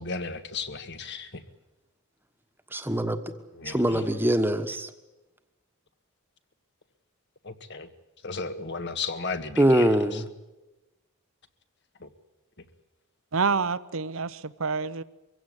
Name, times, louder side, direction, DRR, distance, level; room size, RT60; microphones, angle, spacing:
voice 1, 0.0-1.4 3.6-4.0 7.4-7.9 8.2-9.9 12.0-12.1, left 4 dB, 50° left, 1.7 m, -34 dB
voice 2, 2.7-3.3 3.6-4.9 9.6-10.3, right 1 dB, 10° right, 1.4 m, -23 dB
voice 3, 13.3-15.0, right 5 dB, 65° right, 0.8 m, -27 dB
24.0 x 16.5 x 9.8 m
head